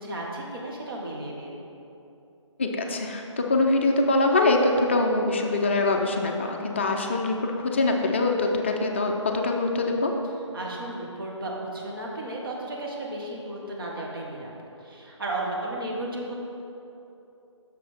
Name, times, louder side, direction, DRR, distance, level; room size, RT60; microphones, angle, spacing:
voice 1, 0.0-1.6 10.5-14.5 14.8-16.3, right 1 dB, 45° right, -2 dB, 1.4 m, -34 dB
voice 2, 2.6-10.1, left 2 dB, 25° left, 2 dB, 0.4 m, -24 dB
7.3 x 6.4 x 4.3 m, 2.9 s
figure-of-eight pair, 155°, 16 cm